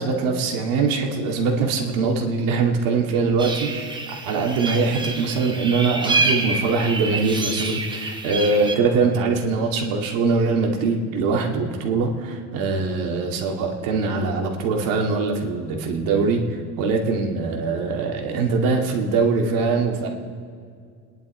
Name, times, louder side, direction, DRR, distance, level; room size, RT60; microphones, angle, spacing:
voice 1, 0.0-20.1, right 4 dB, 80° right, 1 dB, 2.4 m, -22 dB
sound 1, 3.4-8.7, right 3 dB, 15° right, 1.0 m, -27 dB
29.5 x 10.5 x 4.4 m, 2.2 s
cardioid pair, 170°, 33 cm